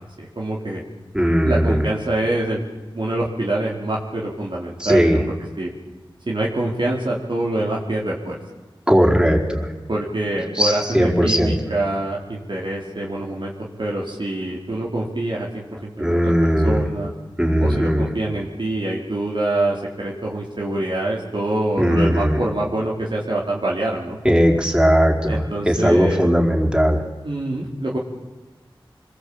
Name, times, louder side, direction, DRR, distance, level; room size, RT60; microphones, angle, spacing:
voice 1, 0.2-0.8 1.5-2.6 2.9-5.2 5.6-5.7 6.3-8.3 9.9-13.5 13.8-16.3 16.6-17.1 17.6-24.2 25.3-26.3 27.2-28.0, right 1 dB, 65° right, -3 dB, 4.2 m, -25 dB
voice 2, 1.1-1.9 4.8-5.2 8.9-9.7 10.5-11.5 16.0-16.8 17.4-18.1 21.8-22.4 24.2-27.0, equal, 10° right, 1 dB, 4.8 m, -18 dB
26.5 x 21.0 x 8.8 m, 1.2 s
wide cardioid pair, 55°, 9 cm